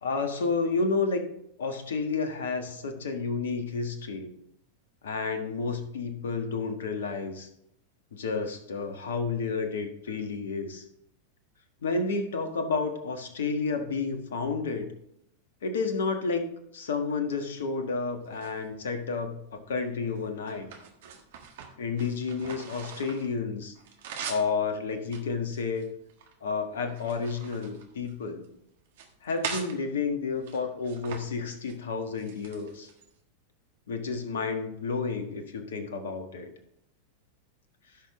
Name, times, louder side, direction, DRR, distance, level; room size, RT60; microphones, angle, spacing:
voice 1, 0.0-1.2 1.6-4.3 5.0-7.5 8.1-10.8 11.8-14.9 15.6-16.5 16.7-20.7 21.8-23.7 24.2-25.9 26.4-28.4 29.2-32.9 33.9-36.5, left 4 dB, 60° left, 7 dB, 1.5 m, -31 dB
sound 1, 18.2-19.2 19.8-23.3 23.6-24.5 25.0-26.3 26.8-28.5 28.9-29.8 30.4-31.2 31.5-31.8 32.2-33.1, right 6 dB, 55° right, 1.4 m, -42 dB
15.0 x 6.4 x 3.1 m, 0.75 s
figure-of-eight pair, 90°, 0 cm